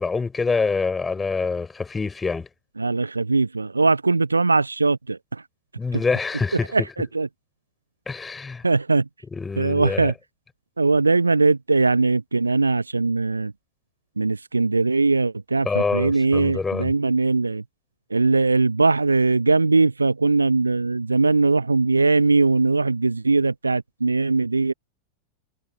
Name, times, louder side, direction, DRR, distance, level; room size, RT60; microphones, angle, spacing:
voice 1, 0.0-2.5 5.8-6.7 8.1-8.6 9.3-10.1 15.6-16.9, left 4 dB, 15° left, 5.6 m, -26 dB
voice 2, 2.8-5.4 5.9-6.0 6.7-7.3 8.6-9.0 9.6-10.1 10.8-13.5 14.2-17.6 18.1-24.7, right 3 dB, 80° right, 0.9 m, -20 dB
figure-of-eight pair, 90°, 0 cm